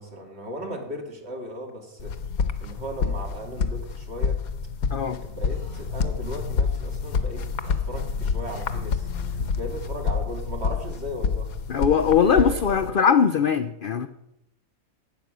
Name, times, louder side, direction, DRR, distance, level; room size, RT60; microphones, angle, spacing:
voice 1, 0.0-2.1 2.6-4.4 5.2-9.1 9.6-11.5 12.2-13.0, equal, 45° right, 2 dB, 2.5 m, -36 dB
sound 1, 2.0-12.9, left 5 dB, 85° left, 1.4 m, -28 dB
Female speech woman speaking, 5.5-6.1 7.6-9.8, left 3 dB, 65° right, 5.5 m, -47 dB
voice 2, 11.7-14.1, left 7 dB, 60° left, 10 dB, 0.6 m, -20 dB
12.0 x 9.3 x 6.2 m, 0.84 s
omnidirectional pair, 1.5 m